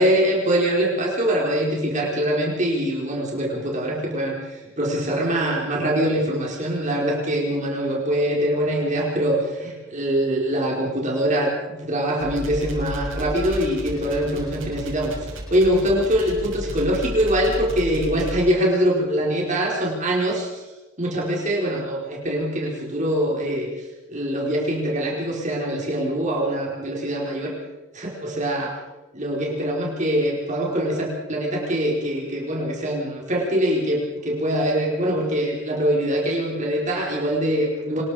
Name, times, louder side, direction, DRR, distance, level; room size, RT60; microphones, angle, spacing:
voice 1, 0.0-20.6 21.0-23.7 24.1-27.5 27.9-28.8 29.1-38.0, equal, 35° right, -3 dB, 4.7 m, -23 dB
sound 1, 12.2-18.4, equal, 65° right, 6.6 m, -33 dB
26.0 x 21.5 x 5.1 m, 1.1 s
head